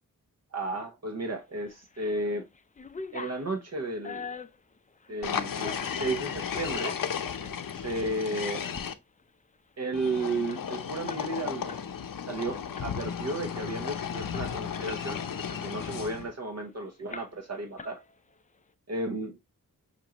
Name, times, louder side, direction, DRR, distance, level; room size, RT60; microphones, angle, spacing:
voice 1, 0.5-2.5 3.1-4.3 5.1-6.9 7.7-8.6 9.8-11.8 12.3-15.2 15.5-18.0 18.9-19.3, right 2 dB, 45° right, 0.9 m, -33 dB
sound 1, 1.7-2.2 2.5-6.1 6.6-7.6 8.0-8.2 8.6-8.9 9.2-9.3 9.6-11.9 12.2-12.4 12.8-13.2 13.7-13.8 14.0-15.1 15.5-16.7 17.1-17.5 17.8-18.4, left 4 dB, 25° left, 0.4 m, -44 dB
sound 2, 5.2-8.9 9.9-16.3, left 7 dB, 70° left, 0.6 m, -34 dB
6.1 x 2.6 x 2.8 m
wide cardioid pair, 70°, 35 cm